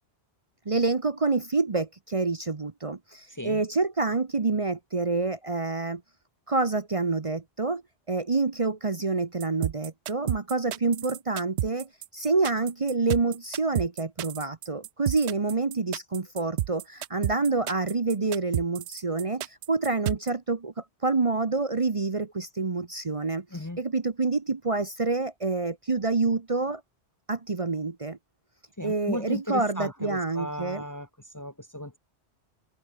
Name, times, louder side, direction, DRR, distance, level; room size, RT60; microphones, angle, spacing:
voice 1, 0.7-6.0 6.5-7.8 8.1-26.8 27.3-28.2 28.8-30.8, right 3 dB, 35° right, 0.9 m, -27 dB
sound 1, 9.4-20.3, right 13 dB, 90° right, 0.9 m, -31 dB
voice 2, 28.8-31.1 31.3-32.0, left 1 dB, 20° left, 0.9 m, -35 dB
omnidirectional pair, 1.1 m